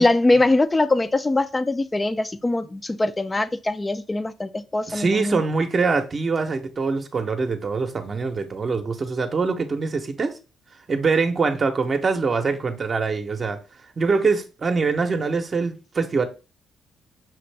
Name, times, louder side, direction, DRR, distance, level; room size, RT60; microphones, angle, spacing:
voice 1, 0.0-5.4, left 2 dB, 20° left, 0.4 m, -22 dB
voice 2, 4.9-10.3 10.9-13.6 14.0-16.3, right 4 dB, 40° right, 0.7 m, -23 dB
5.9 x 2.6 x 3.3 m
cardioid pair, 90°, 0 cm